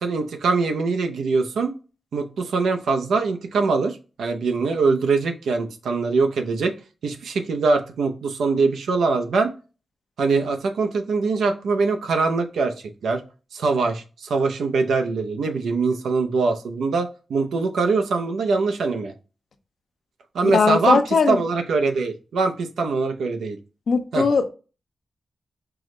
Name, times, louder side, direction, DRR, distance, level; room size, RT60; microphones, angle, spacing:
voice 1, 0.0-1.7 2.1-6.7 7.0-9.5 10.2-12.7 13.0-13.2 13.5-19.1 20.3-21.0 21.3-23.6 24.1-24.3, right 4 dB, 85° right, 0.5 m, -22 dB
voice 2, 20.4-21.4 23.9-24.5, left 5 dB, 70° left, 0.6 m, -19 dB
4.8 x 2.0 x 3.7 m
cardioid pair, 45°, 0 cm